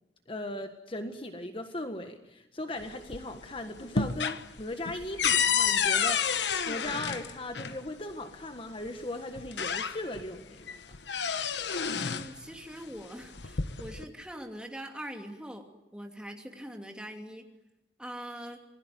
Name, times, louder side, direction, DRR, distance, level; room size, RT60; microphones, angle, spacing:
voice 1, 0.3-10.7, left 1 dB, 30° left, 7 dB, 1.5 m, -38 dB
sound 1, 2.8-3.4 3.8-7.8 8.9-9.0 9.4-10.3 10.7-12.3 13.2-14.0, left 6 dB, 90° left, 1.3 m, -29 dB
voice 2, 12.0-17.5 18.0-18.6, equal, 5° right, 3 dB, 2.8 m, -43 dB
28.0 x 20.5 x 9.4 m, 0.93 s
head